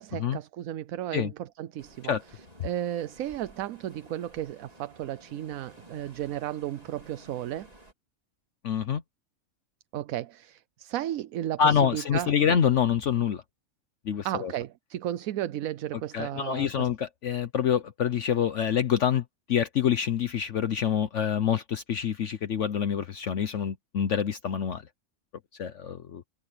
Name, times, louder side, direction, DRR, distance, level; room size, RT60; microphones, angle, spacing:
voice 1, 0.0-2.1 2.6-7.7 9.9-12.3 14.2-16.9, right 12 dB, 80° right, 1.1 m, -34 dB
sound 1, 1.8-7.9, right 2 dB, 25° right, 3.2 m, -54 dB
voice 2, 8.6-9.0 11.6-13.4 14.0-14.5 16.1-24.8 25.6-26.2, left 8 dB, 60° left, 1.1 m, -26 dB
omnidirectional pair, 1.5 m